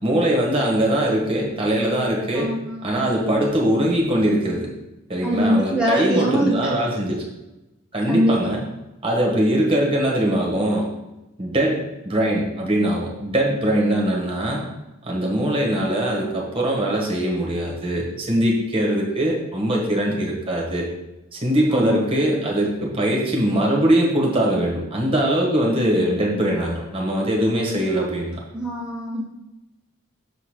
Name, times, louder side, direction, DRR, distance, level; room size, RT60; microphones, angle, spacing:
voice 1, 0.0-2.5 2.8-4.7 5.1-7.2 7.9-8.6 9.0-10.9 11.4-14.7 15.0-20.9 21.3-28.4, right 1 dB, 25° right, -2 dB, 1.5 m, -21 dB
voice 2, 2.3-2.9 5.2-6.7 8.1-8.5 21.7-22.0 28.5-29.2, equal, 5° right, -5 dB, 1.0 m, -23 dB
6.8 x 3.9 x 5.0 m, 0.98 s
head